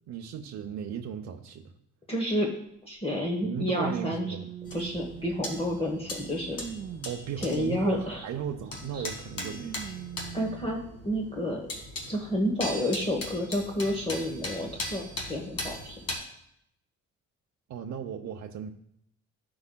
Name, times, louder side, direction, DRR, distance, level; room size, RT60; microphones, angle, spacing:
voice 1, 0.1-1.7 3.4-4.5 7.0-9.8 17.7-18.7, right 8 dB, 65° right, 3 dB, 0.7 m, -36 dB
voice 2, 2.1-2.5 2.8-4.3 4.7-6.6 7.4-8.2 8.9-9.0 10.3-10.8 11.0-11.6 12.1-15.0 15.3-16.0, equal, 20° left, 0 dB, 1.1 m, -30 dB
sound 1, 2.3-2.4 3.5-5.6 6.1-8.2 9.4-10.8 11.5-11.6 12.7-12.8, right 8 dB, 25° right, 0.4 m, -42 dB
sound 2, 4.7-16.2, left 1 dB, 55° left, 1.8 m, -39 dB
14.0 x 4.8 x 2.2 m, 0.76 s
cardioid pair, 90°, 30 cm